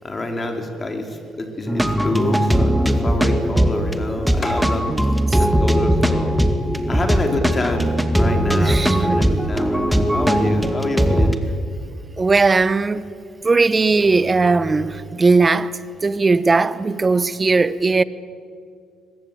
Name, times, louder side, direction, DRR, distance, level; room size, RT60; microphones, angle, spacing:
voice 1, 0.0-4.9 5.4-6.4 6.9-11.6, left 2 dB, 30° left, 4.6 m, -27 dB
sound 1, 1.7-11.3, equal, 5° right, 2.2 m, -19 dB
voice 2, 8.6-9.2 12.2-13.0 13.4-15.7 16.0-18.0, right 3 dB, 30° right, 1.1 m, -18 dB
23.0 x 22.0 x 8.7 m
supercardioid pair, 70°, 0 cm